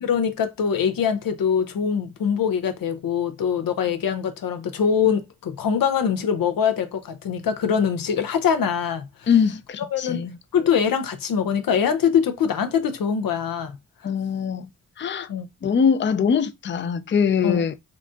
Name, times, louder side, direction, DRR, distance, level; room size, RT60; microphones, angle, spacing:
voice 1, 0.0-9.3 9.9-10.2 10.5-13.8 15.3-15.5 17.4-17.6, left 7 dB, 90° left, 0.6 m, -23 dB
voice 2, 9.3-10.4 14.0-14.7 15.0-15.3 15.6-17.7, left 7 dB, 35° left, 0.4 m, -22 dB
3.9 x 2.6 x 3.5 m
cardioid pair, 55°, 33 cm